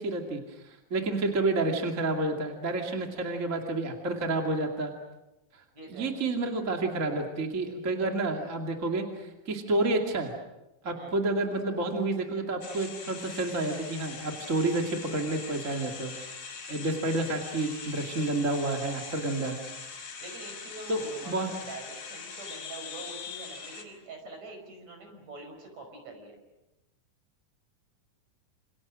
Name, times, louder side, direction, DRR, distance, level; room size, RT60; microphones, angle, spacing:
voice 1, 0.0-4.9 5.5-10.4 10.8-16.3 16.7-19.6 20.9-21.5, right 2 dB, 25° right, 2 dB, 2.3 m, -30 dB
voice 2, 5.7-6.1 10.9-11.1 20.2-26.4, right 3 dB, 50° right, 4 dB, 6.6 m, -45 dB
sound 1, 12.6-23.8, left 5 dB, 65° left, 5.5 m, -42 dB
28.0 x 28.0 x 6.3 m, 0.94 s
omnidirectional pair, 4.0 m